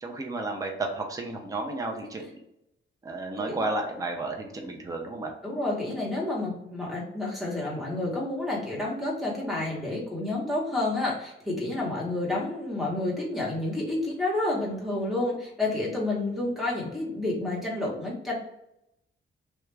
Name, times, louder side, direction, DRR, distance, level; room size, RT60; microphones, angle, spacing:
voice 1, 0.0-2.4 3.0-5.3, right 2 dB, 15° right, 3 dB, 0.5 m, -32 dB
voice 2, 5.4-18.3, left 2 dB, ahead, -4 dB, 0.9 m, -29 dB
3.4 x 2.4 x 3.1 m, 0.82 s
wide cardioid pair, 165°, 21 cm